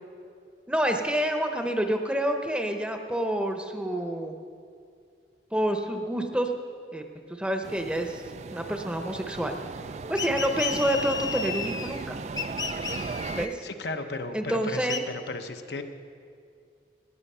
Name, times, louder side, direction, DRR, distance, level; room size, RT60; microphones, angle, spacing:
voice 1, 0.7-4.4 5.5-6.5 6.9-7.0 7.3-8.2 8.5-9.6 10.1-12.2 13.3-13.6 14.3-15.0, right 1 dB, 5° right, 4 dB, 0.8 m, -28 dB
sound 1, 7.6-13.5, right 4 dB, 40° right, 0.3 m, -37 dB
sound 2, 10.2-12.0 12.4-13.5 14.9-15.0, left 5 dB, 20° left, 0.5 m, -33 dB
voice 2, 13.6-15.8, left 3 dB, 65° left, 6 dB, 0.8 m, -35 dB
18.5 x 9.7 x 5.5 m, 2.3 s
head